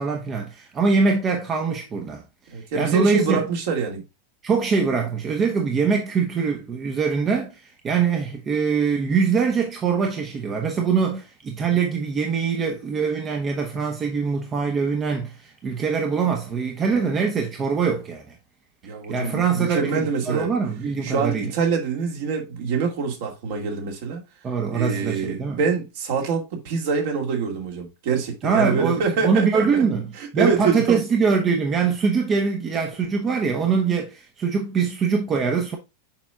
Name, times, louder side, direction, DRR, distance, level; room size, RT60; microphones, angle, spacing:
voice 1, 0.0-2.2 2.7-3.5 4.4-18.3 19.1-21.5 24.4-25.6 28.4-35.8, right 5 dB, 25° right, 1.1 m, -23 dB
voice 2, 2.5-4.0 18.8-20.5 21.0-24.2 24.7-29.8 30.4-31.0, right 5 dB, 50° right, 2.2 m, -25 dB
7.2 x 5.5 x 2.4 m
figure-of-eight pair, 90°, 0 cm